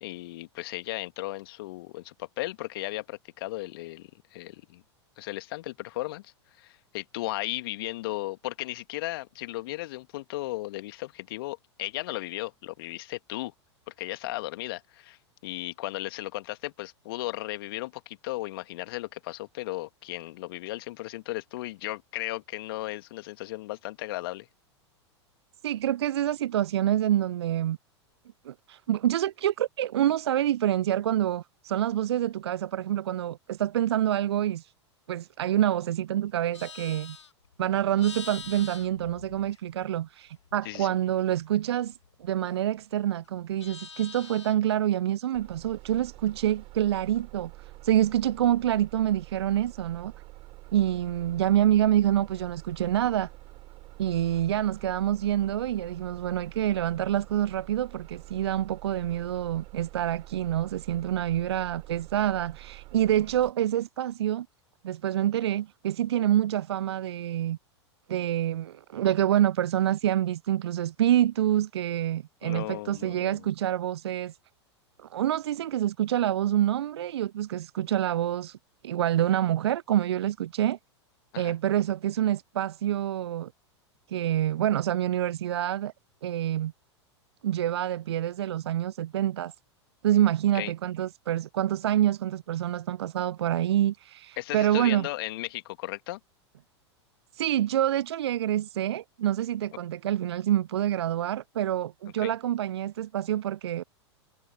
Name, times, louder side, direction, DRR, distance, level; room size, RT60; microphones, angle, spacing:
voice 1, 0.0-4.8 5.2-13.5 13.9-24.5 40.6-40.9 72.4-73.5 81.3-81.6 90.5-90.7 94.4-96.2 102.2-102.3, left 18 dB, 55° left, 2.1 m, -36 dB
voice 2, 25.6-27.8 28.5-34.7 35.1-37.2 37.6-50.1 50.7-53.3 54.0-64.5 64.8-67.6 68.1-74.3 75.0-78.6 78.8-80.8 81.4-83.5 84.1-85.9 86.2-86.7 87.4-89.5 90.0-95.1 97.3-103.8, right 11 dB, 65° right, 0.4 m, -27 dB
Livestock farm animals working animals, 36.3-40.0 40.3-42.8 43.2-44.7, left 6 dB, 80° left, 1.0 m, -46 dB
Bus, 45.3-63.5, right 20 dB, 40° right, 2.8 m, -47 dB
figure-of-eight pair, 95°, 15 cm